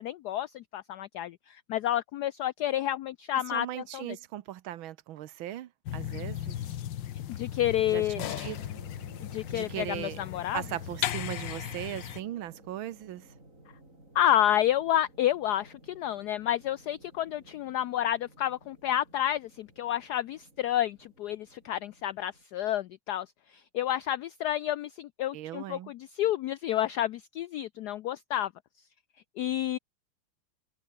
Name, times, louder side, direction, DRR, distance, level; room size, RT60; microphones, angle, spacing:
voice 1, 0.0-4.2 7.3-8.3 9.2-10.6 14.1-23.3 23.5-28.5 29.4-29.8, left 12 dB, 85° left, 0.8 m, -30 dB
voice 2, 3.5-6.6 7.9-8.6 9.5-10.2 10.5-13.3 25.3-25.9, right 13 dB, 80° right, 1.6 m, -38 dB
sound 1, 5.9-12.2, left 11 dB, 65° left, 1.6 m, -36 dB
sound 2, 8.5-22.4, right 1 dB, 35° right, 8.4 m, -55 dB
omnidirectional pair, 2.3 m